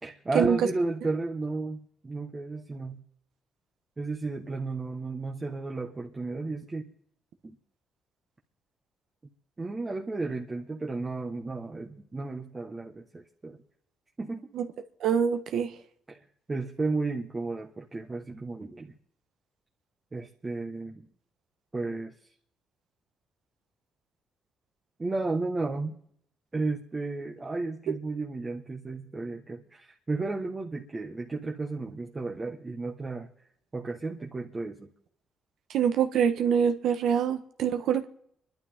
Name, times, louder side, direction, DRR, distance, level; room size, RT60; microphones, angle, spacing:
voice 1, 0.0-3.0 4.0-6.9 9.6-13.6 14.2-14.5 16.1-16.2 16.5-18.9 20.1-21.1 21.7-22.1 25.0-26.0 26.5-33.3 33.7-34.9, right 3 dB, 25° right, 1.4 m, -33 dB
voice 2, 15.0-15.7 27.9-28.0 35.7-38.1, right 8 dB, 75° right, 1.3 m, -25 dB
29.0 x 12.0 x 3.7 m
cardioid pair, 90°, 0 cm